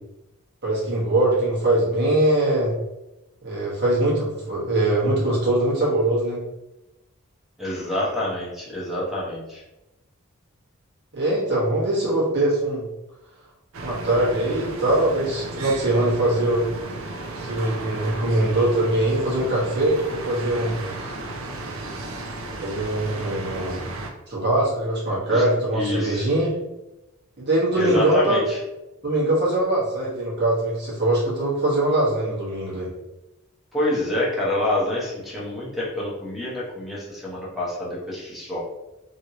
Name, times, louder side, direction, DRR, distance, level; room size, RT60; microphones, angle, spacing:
voice 1, 0.6-2.7 3.4-6.4 11.1-12.8 13.8-16.7 17.3-20.7 22.6-23.9 24.3-26.5 27.4-28.4 29.0-32.9, right 1 dB, 50° right, -7 dB, 1.3 m, -22 dB
voice 2, 7.6-9.6 25.1-25.4 25.7-26.3 27.7-28.6 33.7-38.6, left 1 dB, ahead, -6 dB, 0.8 m, -27 dB
sound 1, 13.7-24.1, right 2 dB, 65° right, 0.5 m, -34 dB
3.1 x 2.8 x 2.9 m, 0.97 s
head